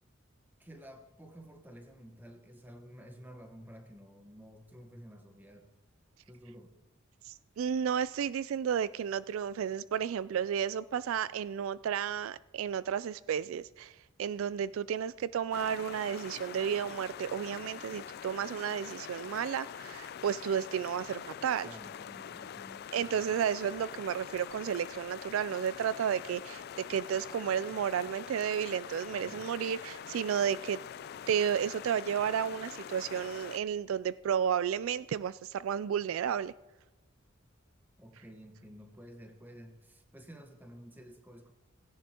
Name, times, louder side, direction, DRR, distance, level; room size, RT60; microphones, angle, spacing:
voice 1, 0.6-5.7 6.3-6.7 21.6-23.2 29.1-29.5 38.0-41.5, equal, 10° right, 1.2 m, -52 dB
voice 2, 7.2-21.7 22.9-30.8 31.3-36.5, right 8 dB, 80° right, 0.3 m, -32 dB
sound 1, 15.5-33.6, left 8 dB, 50° left, 0.3 m, -44 dB
18.5 x 17.0 x 2.9 m
head